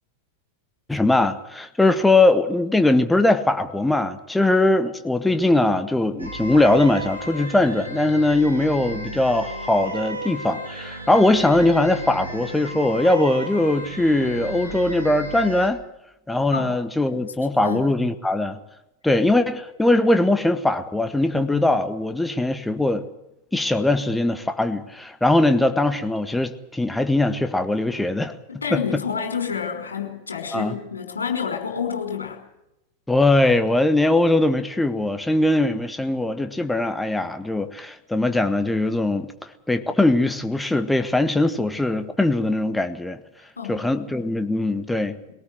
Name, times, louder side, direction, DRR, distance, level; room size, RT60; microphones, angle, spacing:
voice 1, 0.9-15.8 16.3-18.6 19.0-23.0 23.5-28.3 28.7-28.8 30.5-30.7 33.1-39.3 39.7-43.2 43.7-45.2, left 2 dB, 5° left, 9 dB, 1.6 m, -21 dB
sound 1, 6.2-15.7, right 1 dB, 85° right, 3.4 m, -34 dB
voice 2, 28.5-32.4 43.6-43.8, left 6 dB, 75° left, 4 dB, 5.5 m, -28 dB
22.0 x 18.5 x 7.9 m, 0.89 s
figure-of-eight pair, 90°, 0 cm